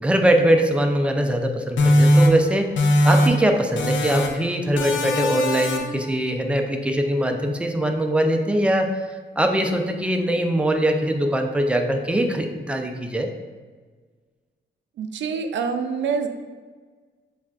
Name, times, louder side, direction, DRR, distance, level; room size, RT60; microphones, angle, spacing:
voice 1, 0.0-2.8 3.0-8.9 9.4-13.3, right 1 dB, 5° right, 4 dB, 0.3 m, -22 dB
sound 1, 1.8-3.5 3.8-4.4 4.8-6.0, equal, 75° left, 0.5 m, -19 dB
voice 2, 15.0-16.3, right 5 dB, 70° right, 6 dB, 0.4 m, -26 dB
6.9 x 2.4 x 2.4 m, 1.4 s
cardioid pair, 105°, 20 cm